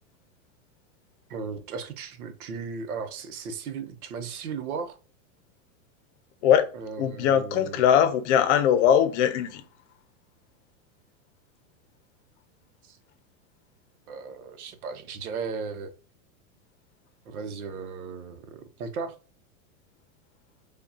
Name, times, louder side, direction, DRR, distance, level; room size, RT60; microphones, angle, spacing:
voice 1, 1.3-5.0 6.7-8.0 12.8-13.0 14.1-15.9 17.3-19.1, right 5 dB, 80° right, 0.9 m, -36 dB
voice 2, 7.0-9.6, left 9 dB, 55° left, 0.7 m, -21 dB
5.0 x 2.3 x 2.7 m
supercardioid pair, 140°, 43 cm